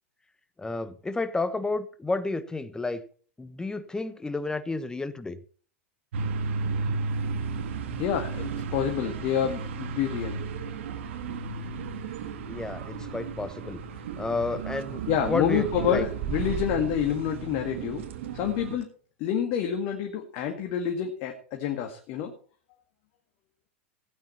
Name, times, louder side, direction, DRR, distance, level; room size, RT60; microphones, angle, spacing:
voice 1, 0.6-3.0 3.4-5.4 12.5-13.8 14.2-16.1, left 3 dB, 10° left, 14 dB, 1.2 m, -31 dB
sound 1, 6.1-18.8, right 5 dB, 70° right, 2.0 m, -34 dB
voice 2, 8.0-10.4 15.1-18.1 18.3-18.9 19.2-22.3, left 9 dB, 50° left, 4 dB, 2.1 m, -28 dB
17.0 x 9.1 x 4.3 m, 0.42 s
hypercardioid pair, 105°, 7 cm